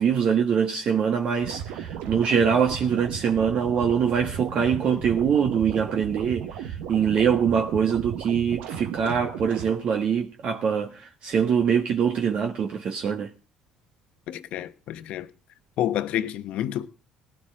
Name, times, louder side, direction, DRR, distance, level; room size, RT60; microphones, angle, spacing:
voice 1, 0.0-13.3, right 7 dB, 55° right, 1.5 m, -24 dB
sound 1, 1.4-9.7, right 9 dB, 75° right, 1.2 m, -35 dB
voice 2, 14.3-15.3 15.8-16.9, left 12 dB, 65° left, 1.1 m, -29 dB
18.5 x 12.5 x 3.7 m
hypercardioid pair, 65°, 2 cm